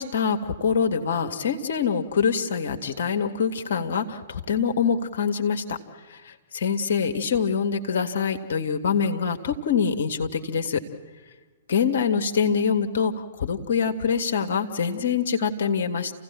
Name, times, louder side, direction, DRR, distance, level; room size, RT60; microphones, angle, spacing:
voice 1, 0.0-5.8 6.5-10.8 11.7-13.1 13.4-16.1, left 6 dB, 60° left, 6 dB, 1.8 m, -24 dB
28.5 x 16.5 x 7.5 m, 1.3 s
figure-of-eight pair, 115°, 0 cm